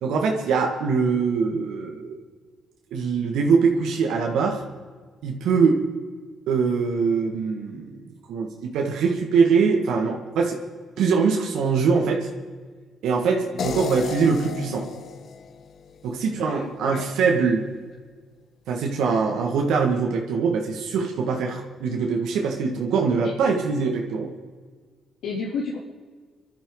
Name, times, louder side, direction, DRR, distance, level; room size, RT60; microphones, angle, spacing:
voice 1, 0.0-2.2 2.9-4.6 5.2-5.8 6.5-8.0 8.3-8.5 8.7-10.6 11.0-12.3 13.0-14.9 16.0-17.7 18.7-24.3, right 5 dB, 85° right, 1 dB, 1.9 m, -23 dB
sound 1, 13.6-16.7, left 7 dB, 60° left, 0.9 m, -35 dB
voice 2, 16.4-17.1 23.2-23.3 25.2-25.8, left 4 dB, 80° left, -6 dB, 3.1 m, -31 dB
24.5 x 12.0 x 4.0 m, 1.5 s
cardioid pair, 90°, 0 cm